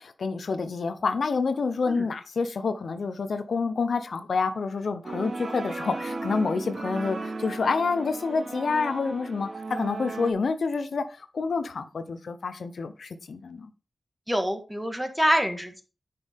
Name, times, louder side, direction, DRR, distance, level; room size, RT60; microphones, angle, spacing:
voice 1, 0.0-13.7, left 4 dB, 75° left, 0.7 m, -28 dB
sound 1, 5.0-10.3, right 3 dB, 50° right, 0.9 m, -35 dB
voice 2, 14.3-15.8, equal, 5° right, 1.5 m, -26 dB
9.5 x 5.4 x 3.5 m
wide cardioid pair, 85°, 0 cm